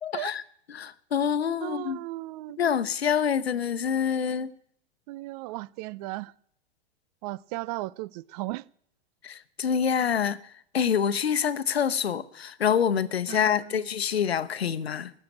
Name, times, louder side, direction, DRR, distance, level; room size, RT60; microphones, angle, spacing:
voice 1, 0.0-0.4 0.7-2.0 2.6-4.5 9.2-15.1, left 7 dB, 80° left, 0.9 m, -26 dB
voice 2, 1.6-2.6 5.1-6.3 7.2-8.6 13.3-13.9, right 19 dB, 40° right, 0.5 m, -36 dB
18.5 x 6.8 x 8.7 m
hypercardioid pair, 100°, 31 cm